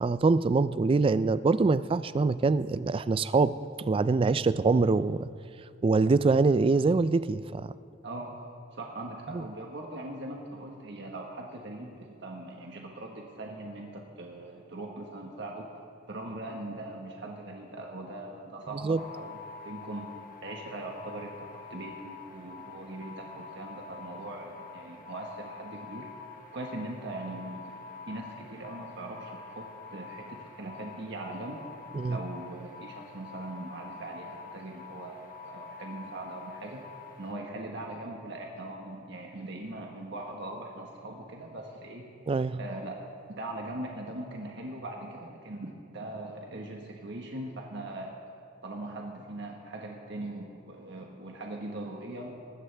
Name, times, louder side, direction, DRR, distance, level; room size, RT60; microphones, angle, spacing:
voice 1, 0.0-5.3 5.8-7.7 9.3-9.4 18.8-19.0 31.9-32.2 42.3-42.6, right 3 dB, 30° right, 15 dB, 0.3 m, -24 dB
voice 2, 8.0-8.4 8.7-15.7 16.1-19.4 19.6-20.1 20.4-26.1 26.5-27.7 28.1-31.6 32.1-36.8 37.2-42.1 42.6-43.0 43.4-48.1 48.6-52.3, right 2 dB, 65° right, 0 dB, 1.4 m, -40 dB
sound 1, 19.0-37.3, left 4 dB, 45° left, 1.1 m, -46 dB
20.0 x 15.0 x 3.4 m, 2.5 s
head